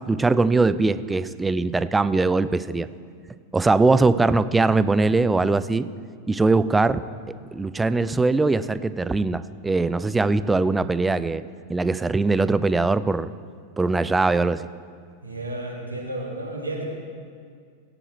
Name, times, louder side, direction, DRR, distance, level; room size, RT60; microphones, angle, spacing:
voice 1, 0.1-2.9 3.5-5.9 6.3-7.0 7.5-11.4 11.7-13.3 13.8-14.7, right 3 dB, 10° right, 15 dB, 0.4 m, -21 dB
voice 2, 15.2-16.8, right 1 dB, 85° right, -2 dB, 1.9 m, -32 dB
17.5 x 9.8 x 3.3 m, 2.1 s
figure-of-eight pair, 90°, 0 cm